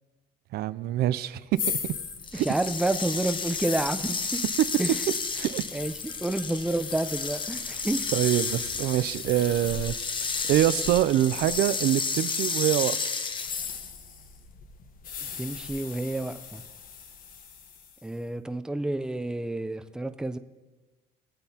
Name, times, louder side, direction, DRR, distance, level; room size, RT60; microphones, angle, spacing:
voice 1, 0.5-1.4 1.8-1.9 2.3-2.5 5.4-5.6 8.1-9.9 10.5-13.0, right 13 dB, 70° right, 15 dB, 0.4 m, -25 dB
sound 1, 1.5-12.5 13.2-18.1, left 7 dB, 55° left, 1.0 m, -39 dB
sound 2, 2.2-13.9, left 4 dB, 30° left, 0.7 m, -32 dB
voice 2, 2.3-4.4 4.8-5.0 5.7-5.9 6.2-8.1 15.2-16.6 18.0-20.4, right 2 dB, 5° right, 10 dB, 0.5 m, -29 dB
20.0 x 8.1 x 2.8 m, 1.2 s
cardioid pair, 110°, 17 cm